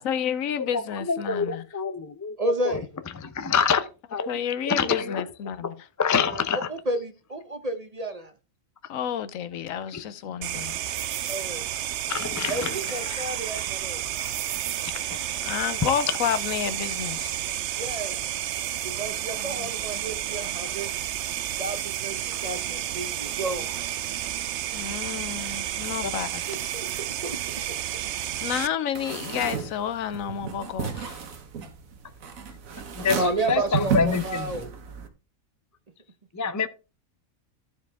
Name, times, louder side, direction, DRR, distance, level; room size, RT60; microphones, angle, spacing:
voice 1, 0.0-1.6 4.3-5.8 8.9-10.7 15.4-17.4 19.4-20.0 24.7-26.4 28.4-31.2, left 9 dB, 85° left, 1.1 m, -30 dB
voice 2, 0.6-2.8 3.1-4.3 4.7-5.2 5.6-5.7 6.0-6.6 12.1-12.8 13.1-13.2 14.9-15.0 15.4-15.5 15.8-15.9 33.0-34.5 36.3-36.7, left 6 dB, 25° left, 0.4 m, -26 dB
voice 3, 2.4-2.9 6.1-8.3 11.3-11.7 12.5-14.0 17.7-18.3 18.8-20.9 21.6-23.7 26.5-26.9 27.2-27.4 33.1-34.7, right 2 dB, 35° right, 0.7 m, -31 dB
sound 1, 10.4-28.7, right 12 dB, 65° right, 0.8 m, -31 dB
sound 2, 28.9-35.1, right 7 dB, 85° right, 1.5 m, -33 dB
14.0 x 4.8 x 3.4 m
omnidirectional pair, 1.4 m